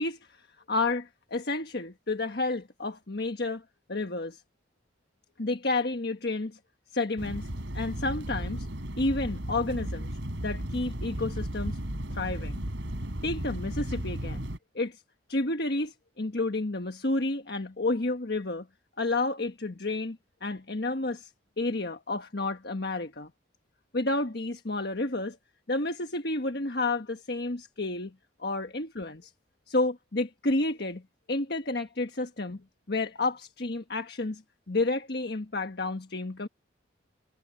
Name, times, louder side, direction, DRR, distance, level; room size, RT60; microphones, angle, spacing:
voice 1, 0.0-4.4 5.4-6.6 6.9-7.5 7.7-8.7 9.0-10.1 10.4-11.8 12.1-12.6 13.2-14.5 14.7-15.0 15.3-18.7 19.0-21.3 21.6-23.3 23.9-25.4 25.7-28.1 28.4-29.3 29.7-31.0 31.3-32.6 32.9-34.4 34.7-36.5, left 2 dB, 60° left, 1.4 m, -30 dB
sound 1, 7.2-14.6, right 1 dB, 90° right, 3.7 m, -35 dB
head